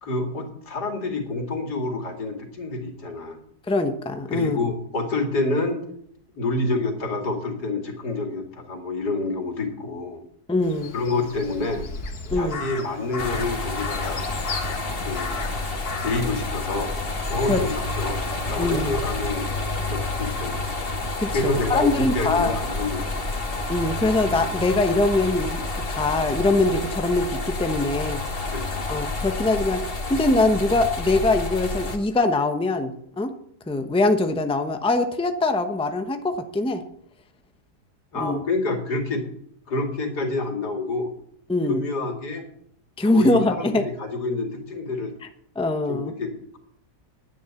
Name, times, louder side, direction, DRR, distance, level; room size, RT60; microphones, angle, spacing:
voice 1, 0.0-3.4 4.3-5.8 6.3-10.2 10.9-11.9 12.3-14.2 15.0-15.4 16.0-16.9 17.3-18.2 18.5-19.5 19.9-20.7 21.3-23.2 28.5-28.8 38.1-39.2 39.7-41.1 41.7-42.4 43.1-45.1 45.9-46.6, left 2 dB, 85° left, 3 dB, 2.9 m, -28 dB
voice 2, 3.7-4.6 10.5-10.9 12.3-12.6 17.5-17.6 18.6-18.9 21.2-22.5 23.7-25.6 25.9-28.2 28.9-33.3 33.7-36.8 38.2-38.4 41.5-41.8 43.0-43.9 45.5-46.1, left 2 dB, 5° left, 7 dB, 0.7 m, -23 dB
Crow, 10.6-19.5, left 4 dB, 70° left, 2.0 m, -36 dB
sound 1, 13.2-32.0, left 2 dB, 35° left, 1.7 m, -29 dB
10.5 x 10.5 x 7.2 m, 0.69 s
omnidirectional pair, 1.7 m